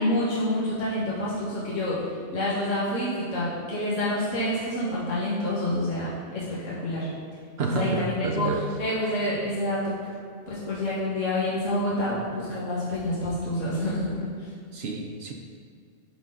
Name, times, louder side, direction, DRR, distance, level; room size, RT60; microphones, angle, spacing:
voice 1, 0.0-2.0 2.3-7.1 7.7-8.5 8.8-10.0 10.5-14.5, left 1 dB, 75° left, -8 dB, 1.7 m, -28 dB
voice 2, 7.6-8.7 14.7-15.3, right 3 dB, 60° right, 2 dB, 0.8 m, -29 dB
11.5 x 4.0 x 3.8 m, 2.2 s
omnidirectional pair, 1.3 m